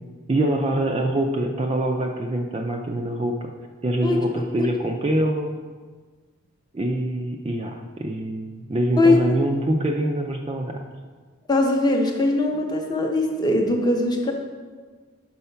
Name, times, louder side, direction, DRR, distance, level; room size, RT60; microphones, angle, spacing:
voice 1, 0.3-3.5 3.8-5.5 6.7-10.8, right 1 dB, 25° right, 3 dB, 0.3 m, -24 dB
voice 2, 11.5-14.3, left 2 dB, 20° left, 2 dB, 0.6 m, -20 dB
5.5 x 4.6 x 5.6 m, 1.5 s
head